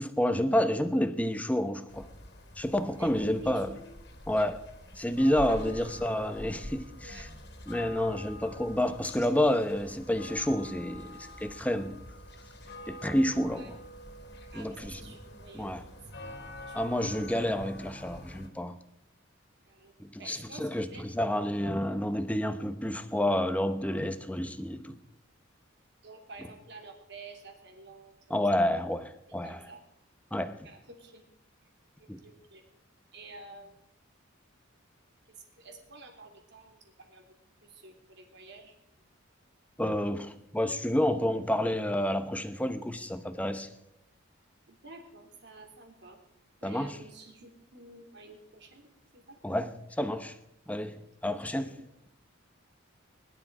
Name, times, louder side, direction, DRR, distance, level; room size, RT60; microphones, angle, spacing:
voice 1, 0.0-2.1 2.6-3.7 4.3-4.6 5.0-7.3 7.7-12.0 12.9-13.7 14.5-15.1 15.5-15.8 16.7-18.8 20.0-25.0 28.3-29.6 30.3-30.7 32.1-32.2 39.8-43.7 46.6-47.0 49.4-50.3 50.7-51.0 51.2-51.7, left 1 dB, 5° left, 0.9 m, -29 dB
sound 1, 1.9-18.5, left 1 dB, 55° left, 2.4 m, -46 dB
voice 2, 3.0-3.8 5.5-5.7 7.0-7.3 13.5-13.8 14.5-16.0 16.6-16.8 19.7-21.3 26.0-28.2 28.7-28.8 29.4-29.8 30.6-31.3 32.0-32.6 33.1-33.7 35.5-38.7 44.7-46.2 46.6-49.4 51.3-51.8, right 2 dB, 55° right, 3.3 m, -50 dB
21.0 x 11.5 x 4.9 m
head